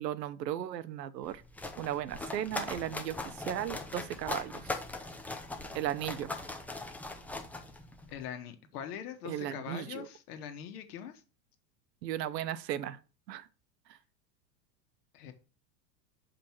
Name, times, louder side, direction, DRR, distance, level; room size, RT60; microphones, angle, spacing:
voice 1, 0.0-1.4 1.8-4.6 5.7-6.3 9.2-10.1 12.0-13.0 13.3-13.5, right 11 dB, 80° right, 0.8 m, -36 dB
sound 1, 1.2-8.2, left 2 dB, 5° left, 0.5 m, -40 dB
voice 2, 8.1-11.2 15.1-15.3, left 9 dB, 65° left, 1.5 m, -42 dB
5.7 x 5.2 x 4.5 m
hypercardioid pair, 105°, 49 cm